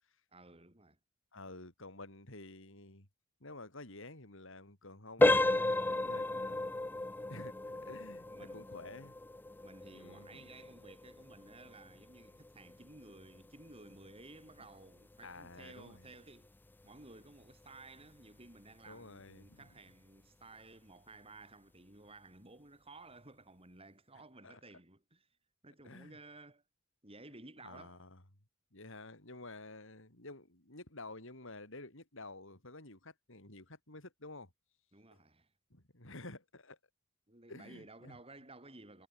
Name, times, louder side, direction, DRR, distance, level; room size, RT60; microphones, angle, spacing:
voice 1, 0.3-1.0 7.6-8.0 8.3-8.7 9.6-16.5 16.8-25.3 25.6-26.6 27.0-28.0 34.9-35.5 37.3-39.1, right 2 dB, 30° right, 7.1 m, -55 dB
voice 2, 1.3-3.1 3.4-6.6 7.3-9.2 9.9-10.4 15.2-16.1 18.9-19.7 24.4-24.6 25.8-26.2 27.6-28.2 28.7-34.5 35.1-35.2 35.7-36.8 37.5-38.2, left 2 dB, 65° left, 5.3 m, -51 dB
sound 1, 5.2-15.9 16.2-16.5 17.0-17.1 17.6-17.8, left 2 dB, 10° left, 0.4 m, -34 dB
head